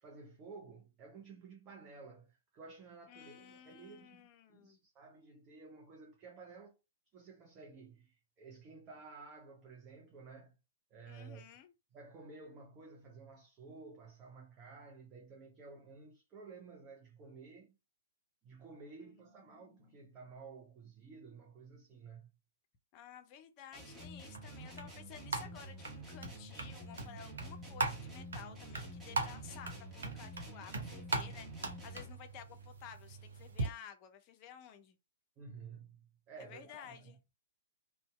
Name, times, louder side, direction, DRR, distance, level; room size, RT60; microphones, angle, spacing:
voice 1, 0.0-6.8 7.1-10.5 10.9-11.5 11.9-17.8 18.4-22.4 35.4-37.2, right 4 dB, 25° right, 0.5 m, -53 dB
voice 2, 3.1-4.8 11.1-11.7 19.0-20.0 22.9-35.0 36.4-37.2, left 9 dB, 35° left, 0.5 m, -54 dB
sound 1, 23.7-32.2, equal, 5° right, 1.1 m, -50 dB
sound 2, 24.0-33.7, right 3 dB, 65° right, 0.6 m, -41 dB
2.6 x 2.1 x 2.3 m
figure-of-eight pair, 115°, 0 cm